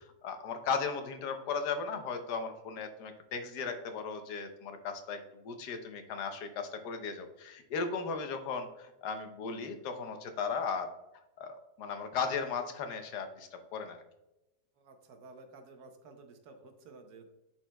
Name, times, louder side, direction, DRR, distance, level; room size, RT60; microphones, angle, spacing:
voice 1, 0.0-10.9 11.4-14.0, left 5 dB, 80° left, 7 dB, 1.4 m, -36 dB
voice 2, 14.7-17.3, right 3 dB, 70° right, 5 dB, 1.4 m, -53 dB
10.5 x 4.3 x 2.2 m, 0.94 s
omnidirectional pair, 1.8 m